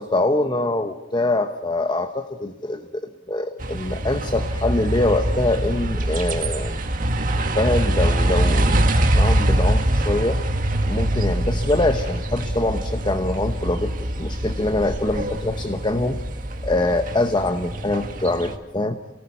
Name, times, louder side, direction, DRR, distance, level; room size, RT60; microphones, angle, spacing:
voice 1, 0.0-6.8 7.5-10.4 10.8-16.2 16.6-19.0, left 2 dB, 25° left, 8 dB, 0.9 m, -24 dB
sound 1, 3.6-18.6, right 1 dB, 45° right, 1.8 m, -23 dB
28.5 x 18.5 x 8.4 m, 1.1 s
head